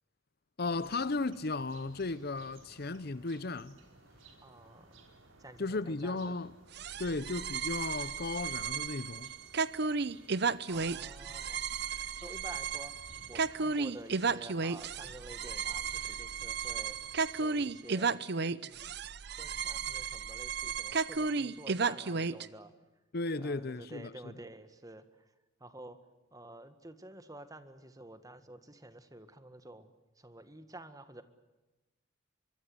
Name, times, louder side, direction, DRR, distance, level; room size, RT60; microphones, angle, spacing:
voice 1, 0.6-3.8 5.6-6.5 7.0-9.3 23.1-24.3, left 3 dB, 50° left, 0.8 m, -35 dB
sound 1, 0.6-17.7, right 2 dB, 85° right, 5.0 m, -59 dB
voice 2, 4.4-4.9 5.4-6.3 7.1-7.2 10.7-11.6 12.2-12.9 13.3-17.0 17.4-18.2 18.6-18.8 19.3-22.7 23.4-25.0 25.6-26.0 26.3-29.9 30.2-31.2, right 1 dB, 20° right, 1.7 m, -50 dB
sound 2, 6.7-22.5, right 5 dB, 55° right, 0.8 m, -34 dB
24.5 x 23.5 x 8.0 m
head